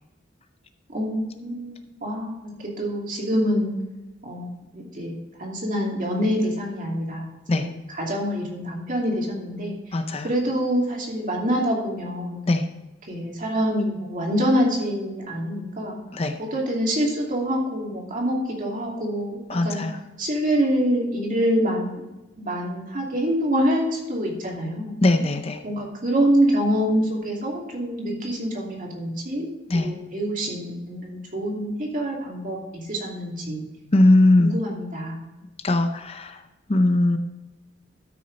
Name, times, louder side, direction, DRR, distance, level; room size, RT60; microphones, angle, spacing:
voice 1, 0.9-3.8 4.2-5.1 5.4-9.8 10.2-12.4 13.1-16.0 16.4-19.8 20.2-22.0 22.4-25.0 25.6-33.7 34.4-35.3, equal, 45° right, -1 dB, 2.6 m, -26 dB
voice 2, 9.9-10.3 12.5-12.6 16.1-16.4 19.5-20.0 25.0-25.6 29.7-29.9 33.9-34.5 35.6-36.4 36.7-37.2, left 2 dB, 30° left, 7 dB, 0.6 m, -19 dB
13.0 x 6.4 x 4.0 m, 1.1 s
head